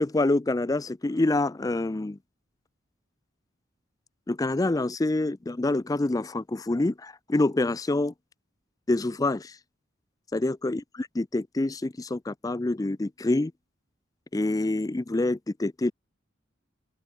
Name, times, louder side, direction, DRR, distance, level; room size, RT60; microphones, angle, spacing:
voice 1, 0.0-2.2 4.3-8.1 8.9-9.5 10.3-10.8 11.2-13.5 14.3-15.9, left 2 dB, 20° left, 0.4 m, -26 dB
open air
head